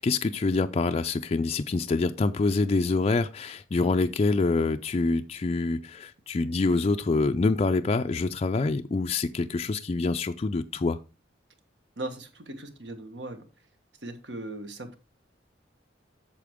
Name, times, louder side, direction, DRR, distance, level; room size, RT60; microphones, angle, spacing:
voice 1, 0.0-11.0, left 3 dB, 35° left, 0.4 m, -26 dB
voice 2, 12.0-13.4 14.0-15.0, right 2 dB, 70° right, 1.5 m, -38 dB
8.4 x 6.8 x 3.6 m
head